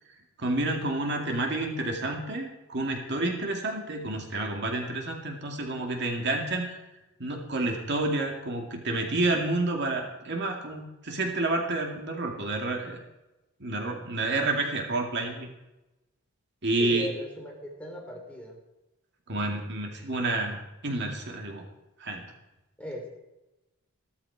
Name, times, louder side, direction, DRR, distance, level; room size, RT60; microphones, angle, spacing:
voice 1, 0.4-6.8 7.2-13.0 13.6-15.5 16.6-17.1 19.3-21.7 22.0-22.2, right 2 dB, 55° right, 1 dB, 2.3 m, -29 dB
voice 2, 16.8-18.6 22.8-23.1, left 1 dB, 5° left, -1 dB, 3.3 m, -38 dB
16.0 x 14.0 x 4.8 m, 0.99 s
head